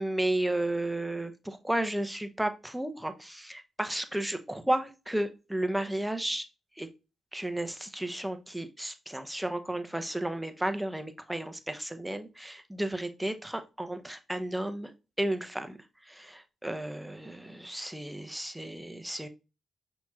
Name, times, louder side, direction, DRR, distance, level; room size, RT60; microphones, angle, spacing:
voice 1, 0.0-6.4 6.8-6.9 7.3-14.9 15.2-15.8 16.1-19.3, right 1 dB, 5° right, 8 dB, 0.7 m, -33 dB
5.8 x 3.0 x 2.3 m, 0.29 s
supercardioid pair, 45°, 0 cm